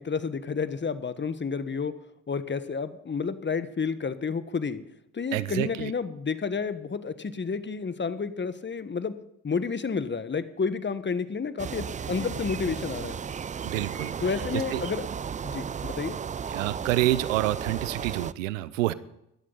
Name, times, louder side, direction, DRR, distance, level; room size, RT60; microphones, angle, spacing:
voice 1, 0.0-1.9 2.3-4.8 5.1-9.1 9.4-13.2 14.2-15.0 15.4-16.2, left 5 dB, 30° left, 13 dB, 1.3 m, -30 dB
voice 2, 5.3-5.9 13.6-14.1 14.5-14.8 16.5-18.9, right 16 dB, 85° right, 18 dB, 0.7 m, -27 dB
sound 1, 11.6-18.3, right 7 dB, 20° right, 0.4 m, -34 dB
16.5 x 12.5 x 4.0 m, 0.81 s
hypercardioid pair, 55°, 37 cm